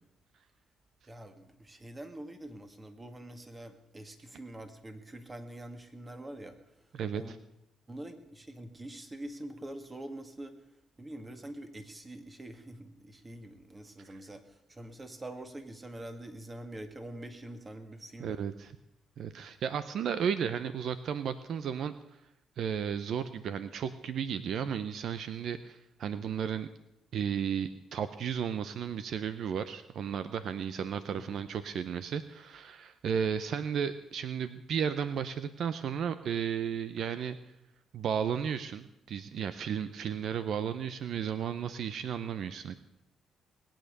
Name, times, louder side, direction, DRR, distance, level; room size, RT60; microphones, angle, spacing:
voice 1, 1.0-7.4 7.9-10.7 11.0-18.4 31.1-31.5, right 1 dB, 20° right, 7 dB, 2.0 m, -45 dB
voice 2, 7.0-7.4 18.2-18.7 19.2-21.9 22.6-26.7 27.1-37.4 37.9-42.8, right 7 dB, 65° right, 12 dB, 0.8 m, -34 dB
20.0 x 9.0 x 6.7 m, 0.84 s
cardioid pair, 90°, 0 cm